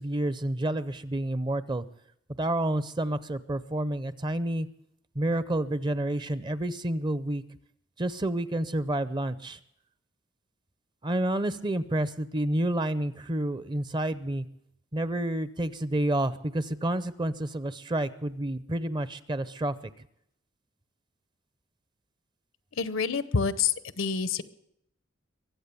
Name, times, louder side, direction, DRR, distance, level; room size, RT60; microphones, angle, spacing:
voice 1, 0.0-1.8 2.4-4.7 5.2-7.4 8.0-9.6 11.0-14.4 14.9-19.7, right 1 dB, 25° right, 15 dB, 0.6 m, -29 dB
voice 2, 22.8-24.4, left 5 dB, 85° left, 15 dB, 0.8 m, -27 dB
22.5 x 8.3 x 6.9 m, 0.75 s
head